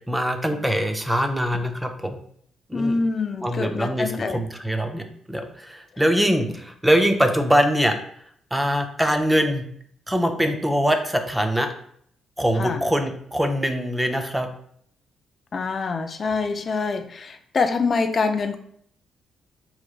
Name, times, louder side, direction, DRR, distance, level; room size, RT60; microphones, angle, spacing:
voice 1, 0.1-2.2 2.7-2.9 3.4-8.0 8.5-9.6 10.1-11.7 12.4-14.5, equal, 10° right, 5 dB, 0.5 m, -23 dB
voice 2, 2.7-4.4 5.9-6.0 12.6-12.8 15.5-18.6, left 4 dB, 40° left, 7 dB, 0.3 m, -25 dB
4.7 x 3.0 x 2.4 m, 0.64 s
cardioid pair, 90°, 0 cm